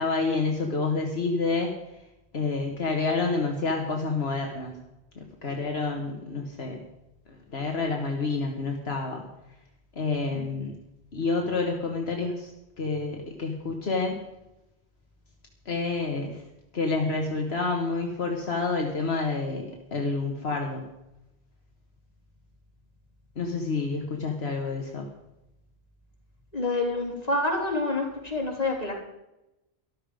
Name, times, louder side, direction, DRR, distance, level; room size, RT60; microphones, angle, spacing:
voice 1, 0.0-1.7 2.3-4.7 5.2-6.8 7.3-9.3 10.0-10.7 11.1-12.5 12.8-14.2 15.7-16.4 16.7-20.8 23.4-25.1, left 3 dB, 70° left, 1 dB, 1.8 m, -28 dB
voice 2, 26.5-28.9, left 2 dB, 35° left, -1 dB, 3.5 m, -28 dB
13.5 x 12.5 x 5.1 m, 0.93 s
omnidirectional pair, 1.1 m